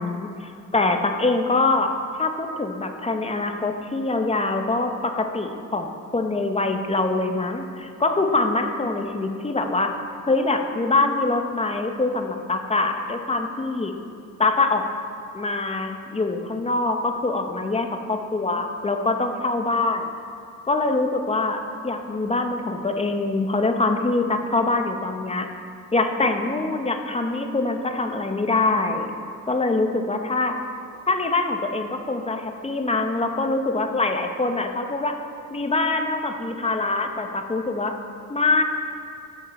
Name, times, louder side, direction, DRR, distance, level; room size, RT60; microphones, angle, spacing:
voice 1, 0.0-1.9 2.2-9.9 10.3-13.9 14.4-14.8 15.3-20.1 20.6-25.5 25.9-29.1 29.5-30.5 31.1-35.2 35.5-37.9 38.3-38.6, left 3 dB, 20° left, 5 dB, 0.9 m, -24 dB
12.0 x 7.3 x 4.3 m, 2.5 s
cardioid pair, 90°, 30 cm